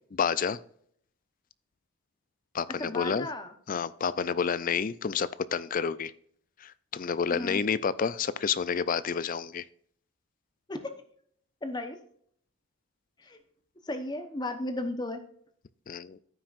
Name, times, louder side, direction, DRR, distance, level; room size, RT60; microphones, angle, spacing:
voice 1, 0.1-0.6 2.5-3.3 3.7-6.1 6.6-9.6 15.9-16.2, left 6 dB, 40° left, 17 dB, 0.4 m, -29 dB
voice 2, 2.8-3.5 7.3-7.6 10.7-10.8 11.6-12.0 13.2-13.4 13.8-15.2, left 1 dB, 20° left, 7 dB, 0.8 m, -34 dB
14.0 x 6.0 x 2.4 m, 0.63 s
head